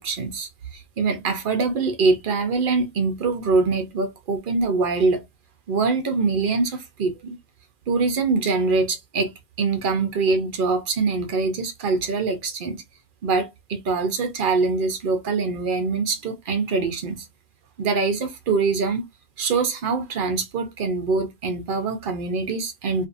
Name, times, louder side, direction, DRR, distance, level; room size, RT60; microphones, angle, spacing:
voice 1, 0.0-5.2 5.7-7.4 7.9-9.3 9.6-12.8 13.2-17.3 17.8-19.0 19.4-23.1, right 4 dB, 60° right, 0.7 m, -24 dB
2.6 x 2.5 x 2.4 m
omnidirectional pair, 1.0 m